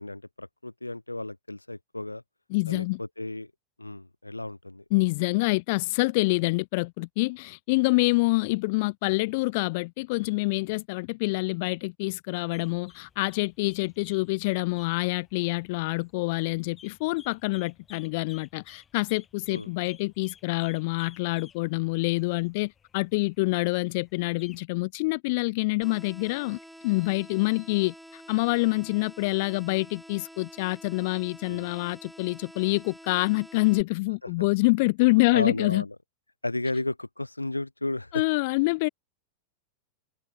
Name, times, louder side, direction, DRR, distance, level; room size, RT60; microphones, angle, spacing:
voice 1, 0.0-2.2 2.7-3.5 3.8-4.8 19.5-19.7 31.5-31.7 34.4-34.5 35.3-35.9 36.4-38.2, left 2 dB, 85° left, 1.1 m, -33 dB
voice 2, 2.5-3.0 4.9-26.6 26.8-35.8 38.1-38.9, left 25 dB, 50° left, 0.8 m, -26 dB
sound 1, 12.5-24.6, left 7 dB, 20° left, 4.1 m, -56 dB
sound 2, 25.8-33.8, equal, ahead, 2.1 m, -48 dB
figure-of-eight pair, 90°, 0 cm